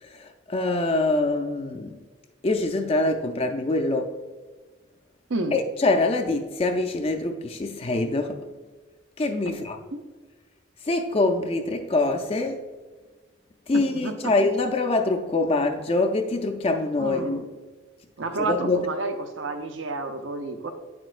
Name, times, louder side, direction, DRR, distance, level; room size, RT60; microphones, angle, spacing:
voice 1, 0.0-2.0 2.4-4.1 5.5-8.4 9.2-9.8 10.8-12.7 13.7-17.4 18.4-18.9, left 2 dB, 30° left, 0.4 m, -24 dB
voice 2, 13.7-14.3 17.0-17.4 18.2-20.7, right 2 dB, 70° right, 0.7 m, -30 dB
8.8 x 6.0 x 2.5 m
head